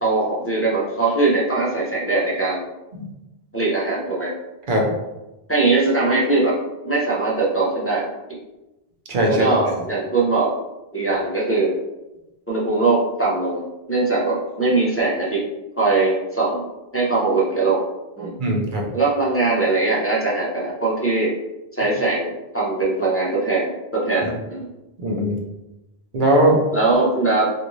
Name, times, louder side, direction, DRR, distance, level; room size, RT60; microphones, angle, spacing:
voice 1, 0.0-2.7 3.5-4.3 5.5-6.5 6.8-8.1 9.3-10.5 10.9-11.7 12.5-15.4 15.8-16.7 16.9-17.8 18.2-18.4 18.9-21.3 21.7-24.7 26.7-27.5, right 3 dB, 20° left, -7 dB, 0.4 m, -21 dB
voice 2, 9.1-9.7 18.4-18.8 25.0-25.4 26.1-26.6, right 1 dB, 55° right, 0 dB, 0.7 m, -19 dB
2.5 x 2.5 x 3.0 m, 0.99 s
omnidirectional pair, 1.1 m